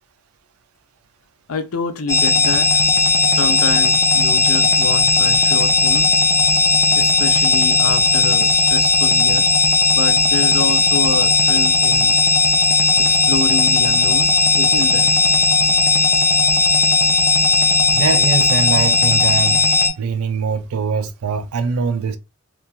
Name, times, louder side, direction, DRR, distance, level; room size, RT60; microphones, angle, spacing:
voice 1, 1.5-2.8 3.2-6.1 6.9-9.5 9.9-12.2 13.0-15.1, left 4 dB, 85° left, 0.5 m, -27 dB
sound 1, 2.1-19.9, left 3 dB, 15° left, 0.4 m, -15 dB
voice 2, 17.9-19.6 20.0-22.2, right 5 dB, 85° right, 0.4 m, -22 dB
2.9 x 2.3 x 2.4 m
head